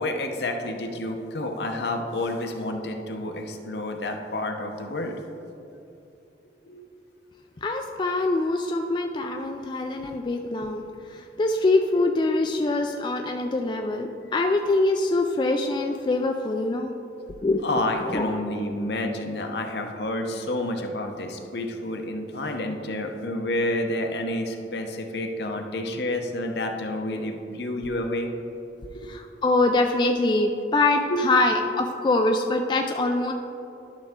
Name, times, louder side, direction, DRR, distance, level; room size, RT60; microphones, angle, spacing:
voice 1, 0.0-5.1 6.7-6.8 17.6-28.3 28.8-29.1 31.1-31.4, left 1 dB, 65° left, 4 dB, 0.8 m, -29 dB
voice 2, 7.6-10.8 11.1-16.9 17.4-17.6 18.1-18.3 29.1-33.3, left 2 dB, 25° left, 3 dB, 0.3 m, -24 dB
11.5 x 6.1 x 3.7 m, 2.8 s
head